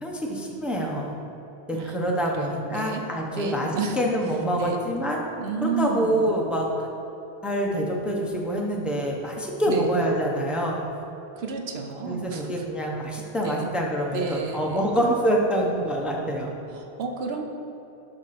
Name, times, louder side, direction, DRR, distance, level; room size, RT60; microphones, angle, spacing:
voice 1, 0.0-1.2 1.7-5.2 5.6-6.9 7.4-10.8 12.0-16.5, right 1 dB, ahead, -1 dB, 0.9 m, -26 dB
voice 2, 2.3-3.0 3.3-4.0 4.6-4.8 5.4-6.2 9.7-9.9 11.4-12.6 13.4-13.7 14.1-14.9 16.7-17.4, right 5 dB, 70° right, 3 dB, 1.1 m, -31 dB
11.5 x 5.1 x 4.3 m, 3.0 s
omnidirectional pair, 1.1 m